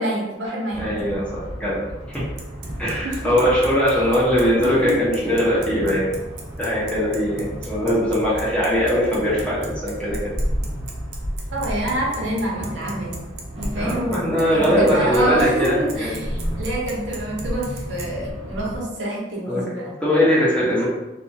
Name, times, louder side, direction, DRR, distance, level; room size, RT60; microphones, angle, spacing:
voice 1, 0.0-0.8 3.0-3.3 4.8-5.0 9.1-9.3 11.5-13.2 13.6-14.1 14.5-19.9 20.8-20.9, right 1 dB, 75° right, -4 dB, 0.8 m, -26 dB
sound 1, 0.7-18.8, equal, 25° right, 0.7 m, -32 dB
voice 2, 0.8-2.2 2.8-6.1 6.6-10.3 13.7-16.2 19.5-19.6 20.0-20.8, equal, 5° left, -7 dB, 0.7 m, -21 dB
Bicycle, 2.1-18.1, right 5 dB, 55° right, 0.4 m, -39 dB
2.7 x 2.3 x 2.7 m, 1.0 s
head